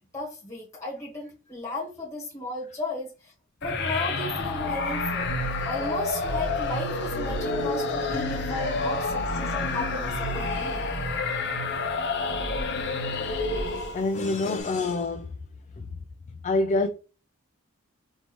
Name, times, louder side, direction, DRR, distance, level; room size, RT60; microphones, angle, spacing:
voice 1, 0.1-3.3 3.6-5.3 5.6-10.9, left 2 dB, 15° left, 1.4 m, -34 dB
sound 1, 3.6-14.2, left 3 dB, 55° left, 0.7 m, -29 dB
voice 2, 13.7-15.3 15.8-15.9 16.4-16.9, left 2 dB, 35° left, 0.3 m, -26 dB
4.4 x 2.7 x 3.0 m
head